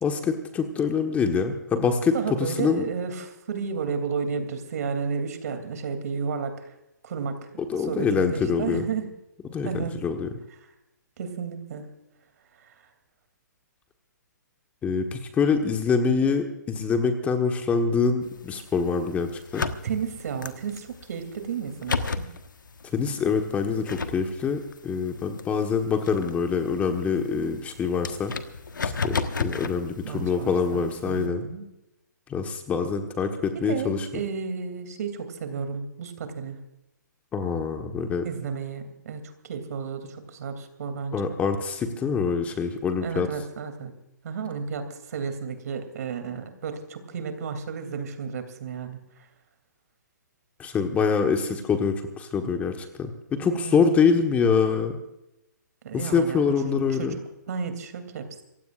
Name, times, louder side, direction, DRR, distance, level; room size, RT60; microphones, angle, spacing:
voice 1, 0.0-2.1 2.4-2.9 7.7-8.8 9.5-10.3 14.8-19.6 22.9-28.3 28.8-31.4 32.3-34.1 37.3-38.3 41.1-43.3 50.6-55.0 55.9-57.1, left 5 dB, 15° left, 5 dB, 1.3 m, -25 dB
voice 2, 2.1-6.7 7.0-9.1 9.6-10.0 10.6-10.7 11.2-11.9 12.6-12.7 19.8-22.3 30.0-31.6 33.5-36.6 38.2-41.3 43.0-43.9 44.2-49.0 53.3-53.7 55.8-57.2 57.5-58.4, right 6 dB, 55° right, 8 dB, 2.8 m, -32 dB
sound 1, 18.2-31.3, left 4 dB, 85° left, 1.4 m, -35 dB
27.5 x 15.5 x 2.5 m, 0.90 s
hypercardioid pair, 145°, 10 cm